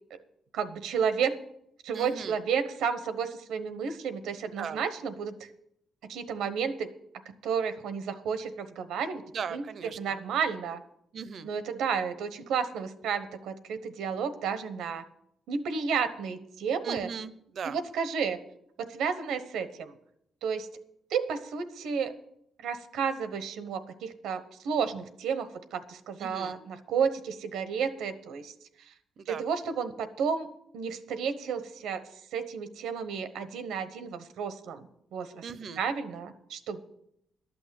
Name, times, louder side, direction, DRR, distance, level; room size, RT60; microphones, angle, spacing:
voice 1, 0.5-1.4 1.8-5.4 6.1-6.9 7.4-9.2 9.5-9.7 10.0-10.8 11.4-15.0 15.5-17.1 17.6-18.4 18.9-19.9 20.4-20.7 21.1-22.1 22.6-28.5 29.3-32.0 32.3-35.4 35.8-36.8, right 6 dB, 90° right, 11 dB, 1.0 m, -32 dB
voice 2, 1.9-2.4 4.6-4.8 9.3-10.0 11.1-11.5 16.8-17.8 26.2-26.5 29.2-29.4 35.4-35.8, right 6 dB, 60° right, 15 dB, 0.7 m, -38 dB
12.0 x 6.2 x 8.9 m, 0.75 s
cardioid pair, 85°, 0 cm